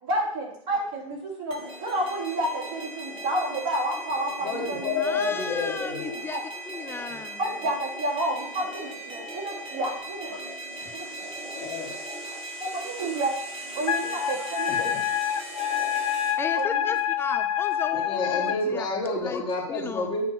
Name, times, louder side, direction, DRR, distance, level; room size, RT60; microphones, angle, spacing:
voice 1, 0.0-5.0 6.3-6.4 7.4-10.4 10.9-11.3 12.6-13.4 13.7-15.0 16.5-16.9, right 1 dB, 50° right, -3 dB, 2.6 m, -30 dB
sound 1, 1.5-16.3, right 1 dB, 35° right, 1.4 m, -38 dB
voice 2, 4.4-6.2 11.5-12.0 14.7-15.0 17.9-20.3, left 3 dB, 30° left, -3 dB, 1.5 m, -29 dB
voice 3, 5.0-6.4 6.6-7.4 10.8-10.9 16.4-18.9 19.2-20.2, left 5 dB, 15° left, 7 dB, 0.6 m, -35 dB
Wind instrument woodwind instrument, 13.9-18.6, left 10 dB, 80° left, 0.4 m, -27 dB
7.5 x 2.9 x 5.5 m, 0.70 s
hypercardioid pair, 105°, 17 cm